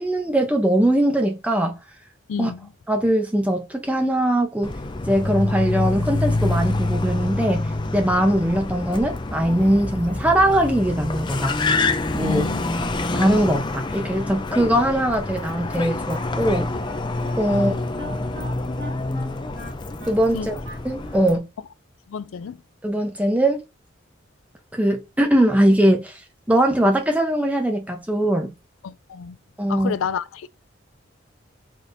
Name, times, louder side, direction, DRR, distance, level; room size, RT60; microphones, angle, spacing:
voice 1, 0.0-1.8 2.4-2.5 2.9-4.8 5.1-7.7 7.9-11.5 12.1-12.4 13.1-16.7 17.4-17.7 20.1-20.6 20.8-21.5 22.8-23.6 24.7-26.2 26.5-28.5 29.6-29.9, right 1 dB, 5° right, 0.8 m, -21 dB
voice 2, 2.3-2.7 12.2-12.8 16.7-16.8 17.5-17.8 20.3-20.5 22.1-22.6 28.8-29.4 29.7-30.5, left 7 dB, 90° left, 0.4 m, -30 dB
Car, 4.6-21.4, left 2 dB, 25° left, 0.5 m, -26 dB
Wind instrument woodwind instrument, 15.8-21.4, equal, 50° right, 2.2 m, -41 dB
4.9 x 4.1 x 2.6 m
head